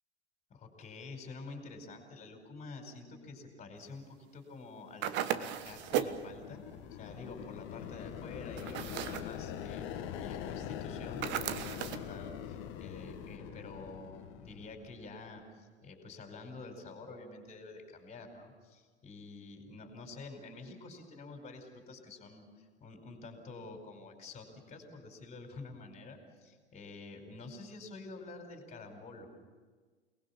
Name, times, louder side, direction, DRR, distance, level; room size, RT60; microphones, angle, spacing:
voice 1, 0.5-6.6 6.9-9.9 10.1-29.3, left 3 dB, 20° left, 5 dB, 4.9 m, -48 dB
sound 1, 5.0-6.2 8.6-9.3 11.2-12.1, right 10 dB, 30° right, 1.3 m, -35 dB
sound 2, 5.4-15.2, left 9 dB, 35° left, 1.8 m, -43 dB
29.0 x 20.0 x 7.2 m, 1.4 s
figure-of-eight pair, 95°, 34 cm